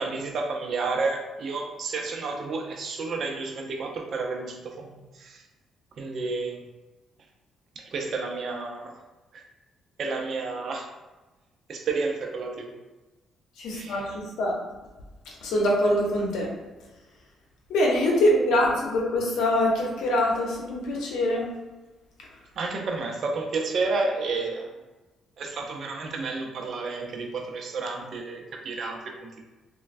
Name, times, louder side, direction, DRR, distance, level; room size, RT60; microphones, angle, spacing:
voice 1, 0.0-5.4 6.0-6.6 7.8-8.9 9.3-9.4 10.0-10.9 11.7-12.7 13.7-14.0 22.6-24.7 25.4-29.4, right 3 dB, 60° right, 2 dB, 0.5 m, -31 dB
voice 2, 13.6-14.6 15.4-16.5 17.7-21.5, left 1 dB, 85° left, -2 dB, 0.7 m, -24 dB
3.1 x 2.2 x 2.5 m, 1.1 s
cardioid pair, 90°, 0 cm